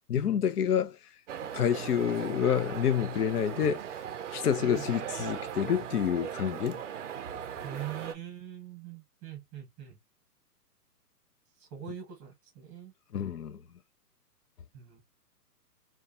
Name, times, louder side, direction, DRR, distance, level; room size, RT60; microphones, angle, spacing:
voice 1, 0.1-1.0 1.5-3.8 4.3-6.8 13.1-13.6, left 9 dB, 70° left, 0.6 m, -28 dB
sound 1, 1.3-8.2, right 9 dB, 50° right, 0.5 m, -39 dB
voice 2, 4.6-5.0 7.6-10.0 11.6-12.9 14.7-15.0, right 10 dB, 15° right, 1.0 m, -43 dB
2.6 x 2.3 x 2.4 m
hypercardioid pair, 145°, 48 cm